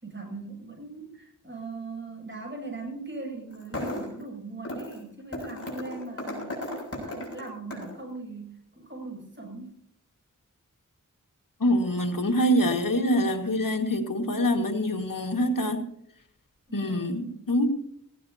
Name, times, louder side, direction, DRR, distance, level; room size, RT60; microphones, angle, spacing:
voice 1, 0.0-9.8 16.7-17.4, right 3 dB, 35° right, 0 dB, 7.6 m, -40 dB
sound 1, 3.5-4.2 4.6-5.0 5.3-8.0, left 1 dB, 45° left, 7.3 m, -35 dB
voice 2, 11.6-15.8 16.7-17.7, equal, 85° left, 4 dB, 1.9 m, -25 dB
19.0 x 17.0 x 2.9 m, 0.71 s
wide cardioid pair, 50°, 32 cm